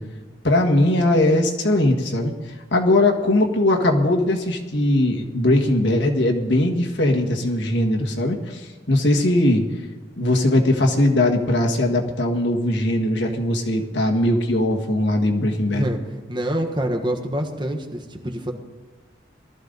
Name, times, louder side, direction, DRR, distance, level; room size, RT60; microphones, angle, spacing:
voice 1, 0.4-2.3 2.7-9.6 10.2-15.9, left 1 dB, 80° left, 1 dB, 1.8 m, -20 dB
voice 2, 15.7-16.0 16.3-18.5, right 1 dB, 25° right, 3 dB, 1.4 m, -26 dB
19.5 x 13.5 x 4.0 m, 1.3 s
head